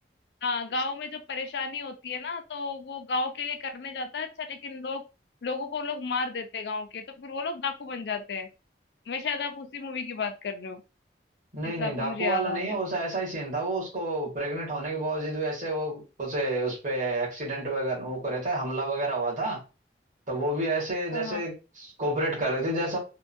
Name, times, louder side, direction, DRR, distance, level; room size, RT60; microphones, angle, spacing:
voice 1, 0.4-5.0 5.4-8.5 9.1-10.8 11.6-12.8 21.1-21.4, left 4 dB, 70° left, 0.4 m, -33 dB
voice 2, 11.5-19.6 20.3-23.0, right 2 dB, 45° right, 1.6 m, -29 dB
3.6 x 2.3 x 2.5 m
head